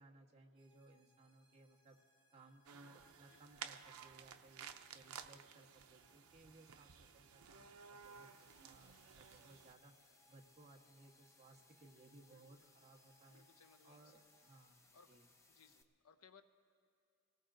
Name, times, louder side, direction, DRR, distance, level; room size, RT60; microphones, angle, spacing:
voice 1, 0.0-2.0 2.3-13.4 13.8-15.3, right 2 dB, 30° right, -1 dB, 1.2 m, -64 dB
sound 1, 0.6-14.6, equal, 10° right, 4.0 m, -76 dB
sound 2, 2.7-9.7, right 7 dB, 90° right, 0.6 m, -55 dB
sound 3, 8.0-15.8, left 3 dB, 15° left, 0.7 m, -70 dB
voice 2, 12.3-12.9 13.3-14.1 14.9-15.1 15.5-16.4, left 6 dB, 90° left, 7 dB, 0.8 m, -67 dB
30.0 x 18.5 x 2.6 m, 2.3 s
head